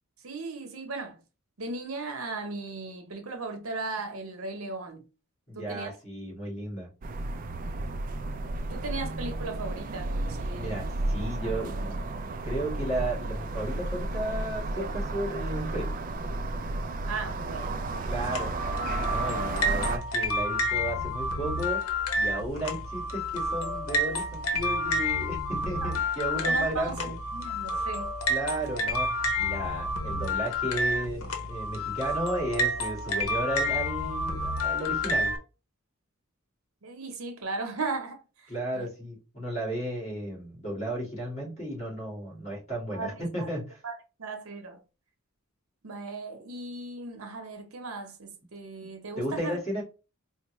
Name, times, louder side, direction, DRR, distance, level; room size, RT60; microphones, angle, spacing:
voice 1, 0.2-1.2 1.6-5.0 5.6-5.9 8.7-10.9 17.0-18.4 25.8-25.9 26.3-28.1 36.8-38.2 38.7-38.9 42.9-43.2 43.8-43.9 44.2-44.8 45.8-49.6, right 3 dB, 85° right, 0.8 m, -37 dB
voice 2, 5.5-6.9 10.5-11.9 12.4-15.9 18.0-18.5 18.9-21.8 22.1-27.2 28.3-29.1 29.4-35.4 38.5-43.8 49.2-49.8, right 1 dB, 35° left, 2.1 m, -34 dB
sound 1, 7.0-20.0, right 2 dB, 40° right, 0.3 m, -32 dB
sound 2, 18.1-35.4, left 1 dB, 90° left, 0.8 m, -29 dB
4.4 x 2.1 x 3.0 m
head